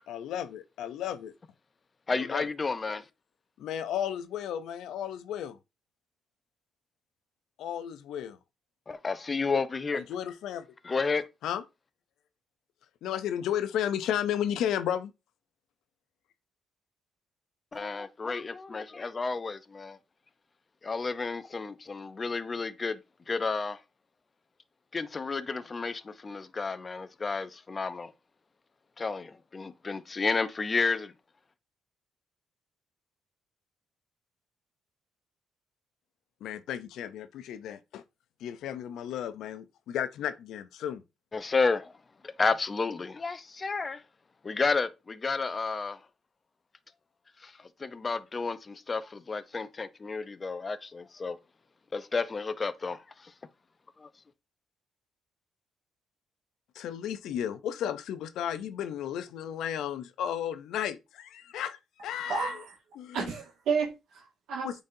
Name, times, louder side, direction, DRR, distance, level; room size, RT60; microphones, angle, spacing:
voice 1, 0.1-1.3 2.1-2.5 3.6-5.6 7.6-8.4 10.0-10.7 11.4-11.6 13.0-15.1 36.4-38.0 38.4-41.0 56.8-62.5 63.0-63.3 64.6-64.8, left 10 dB, 80° left, 0.5 m, -33 dB
voice 2, 2.1-3.0 8.9-10.0 10.8-11.2 17.7-20.0 20.8-23.0 23.3-23.8 24.9-28.1 29.0-31.1 41.3-41.9 42.2-44.0 44.4-46.0 47.4-51.4 51.9-53.3 54.0-54.1, left 4 dB, 30° left, 0.6 m, -31 dB
voice 3, 62.3-62.8 63.1-64.8, right 5 dB, 75° right, 1.9 m, -32 dB
8.7 x 4.1 x 2.7 m
cardioid pair, 90°, 0 cm